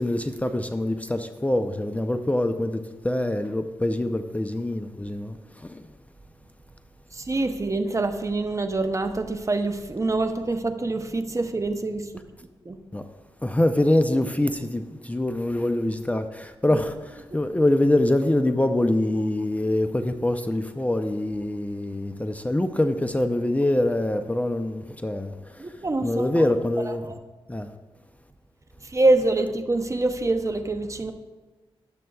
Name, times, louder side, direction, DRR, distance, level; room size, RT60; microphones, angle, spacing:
voice 1, 0.0-5.8 12.9-13.1 13.4-25.6 26.0-27.0 27.5-27.7, left 1 dB, 15° left, 0.5 m, -24 dB
voice 2, 7.1-12.0 12.7-12.8 16.7-16.8 25.6-26.4 26.9-27.1 28.8-31.1, right 2 dB, 30° right, 0.7 m, -25 dB
12.0 x 7.4 x 2.3 m
cardioid pair, 50°, 10 cm